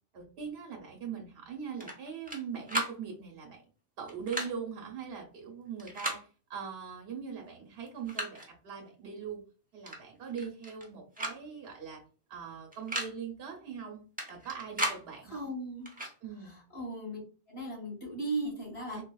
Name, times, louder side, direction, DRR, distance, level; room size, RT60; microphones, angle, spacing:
voice 1, 0.1-3.6 4.0-9.4 9.7-12.0 12.3-14.0 14.3-15.5 16.2-16.6 18.9-19.0, right 6 dB, 65° right, 1 dB, 1.0 m, -41 dB
sound 1, 1.8-2.4 2.7-3.0 4.1-4.5 5.8-6.2 7.3-7.4 7.8-8.5 9.9-10.0 10.3-10.9 11.2-11.4 11.6-11.7 12.7-13.1 14.2-15.0 15.9-16.1, right 1 dB, 10° right, 0.5 m, -35 dB
voice 2, 15.2-15.9 16.4-17.2 17.5-19.0, right 2 dB, 70° left, -4 dB, 2.0 m, -37 dB
3.9 x 2.3 x 2.2 m, 0.37 s
omnidirectional pair, 1.2 m